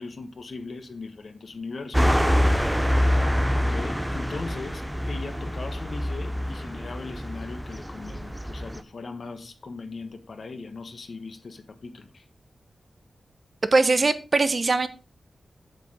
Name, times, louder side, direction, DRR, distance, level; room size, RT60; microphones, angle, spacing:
voice 1, 0.0-2.2 3.5-12.2, left 3 dB, 60° left, 1.4 m, -39 dB
sound 1, 1.9-8.8, equal, 5° right, 0.6 m, -25 dB
voice 2, 13.7-14.9, right 3 dB, 45° right, 1.0 m, -21 dB
8.1 x 6.8 x 4.9 m
wide cardioid pair, 95°, 0 cm